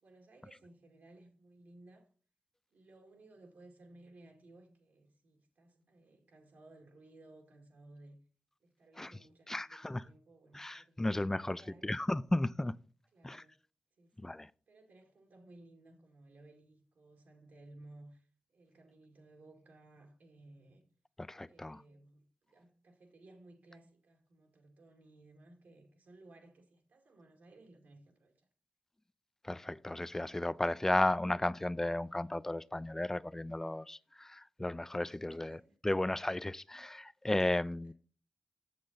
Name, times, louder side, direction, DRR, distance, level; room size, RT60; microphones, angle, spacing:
voice 1, 0.0-2.1 2.7-8.2 8.6-11.9 13.1-13.5 14.0-14.3 14.7-20.8 21.5-28.5 35.1-35.7 37.8-37.9, right 2 dB, 80° right, 1.9 m, -59 dB
voice 2, 9.5-10.0 10.5-12.7 13.2-13.4 14.2-14.5 21.2-21.8 29.4-37.9, left 1 dB, 15° left, 0.3 m, -34 dB
7.4 x 6.6 x 4.0 m
cardioid pair, 60°, 3 cm